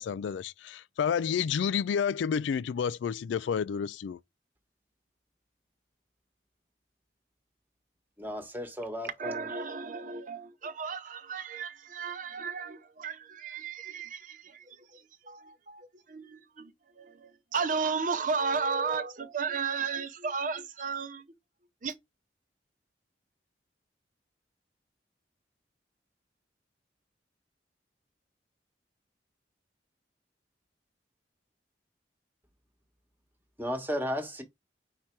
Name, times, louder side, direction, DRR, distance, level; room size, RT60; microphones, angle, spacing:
voice 1, 0.0-4.2, left 7 dB, 90° left, 0.3 m, -30 dB
voice 2, 8.2-9.5 33.6-34.4, equal, 10° right, 1.2 m, -34 dB
voice 3, 9.2-21.3 21.8-22.0, right 5 dB, 45° right, 0.7 m, -34 dB
4.8 x 4.3 x 4.5 m
head